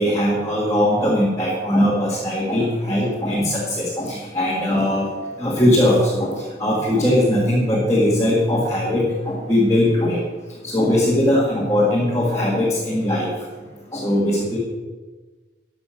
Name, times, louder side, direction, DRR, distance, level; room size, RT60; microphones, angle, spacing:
voice 1, 0.0-5.1 5.4-6.3 6.6-10.2 10.7-13.3 13.9-14.6, left 1 dB, 15° left, -5 dB, 2.0 m, -20 dB
12.0 x 6.8 x 6.0 m, 1.3 s
head